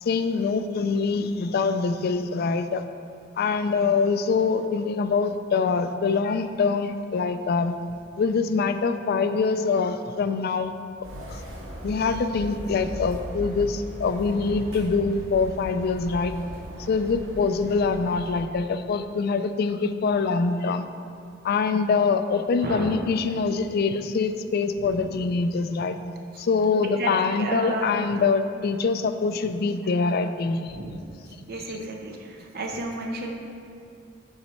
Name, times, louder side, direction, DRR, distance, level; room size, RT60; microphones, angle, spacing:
voice 1, 0.0-2.8 3.4-7.8 8.2-10.7 11.3-11.4 11.8-16.3 16.8-20.9 21.4-26.0 26.4-30.8, left 4 dB, 50° left, 9 dB, 0.3 m, -24 dB
sound 1, 11.0-18.4, equal, 85° right, 1.5 m, -38 dB
voice 2, 22.6-23.0 24.8-25.0 26.3-26.5 27.0-28.1 29.8-29.9 30.7-31.0 31.5-33.3, right 2 dB, 50° right, 1 dB, 0.6 m, -32 dB
5.7 x 4.2 x 5.5 m, 2.5 s
head